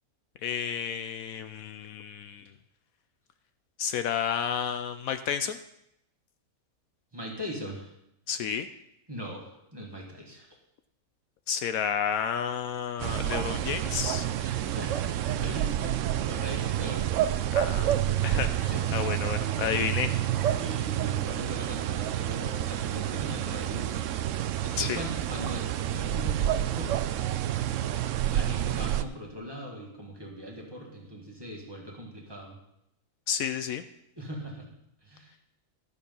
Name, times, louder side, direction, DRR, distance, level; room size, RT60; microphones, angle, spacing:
voice 1, 0.4-2.5 3.8-5.6 8.3-8.7 11.5-14.3 17.6-17.9 18.2-20.1 24.8-25.0 33.3-33.8, left 8 dB, 75° left, 10 dB, 1.0 m, -31 dB
voice 2, 7.1-7.9 9.1-10.5 14.4-15.1 15.4-15.9 16.3-17.1 18.3-19.1 20.5-24.0 24.6-27.0 28.3-32.6 34.2-34.7 35.0-35.3, equal, 15° right, -1 dB, 1.9 m, -40 dB
sound 1, 13.0-29.0, right 11 dB, 70° right, 0.8 m, -29 dB
12.5 x 7.1 x 5.4 m, 0.82 s
omnidirectional pair, 1.5 m